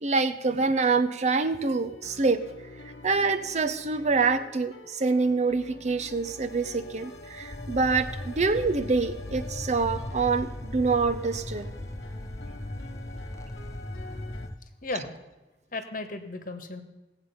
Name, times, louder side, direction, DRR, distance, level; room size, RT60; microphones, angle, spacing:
voice 1, 0.0-2.4 3.0-11.7, right 4 dB, 40° right, 10 dB, 0.6 m, -26 dB
sound 1, 0.9-14.5, left 3 dB, 85° left, 1.1 m, -47 dB
sound 2, 6.1-14.6, left 1 dB, 15° left, 0.5 m, -38 dB
voice 2, 14.8-15.2 15.7-16.8, left 2 dB, 45° left, 8 dB, 1.3 m, -35 dB
18.5 x 7.9 x 5.6 m, 1.1 s
head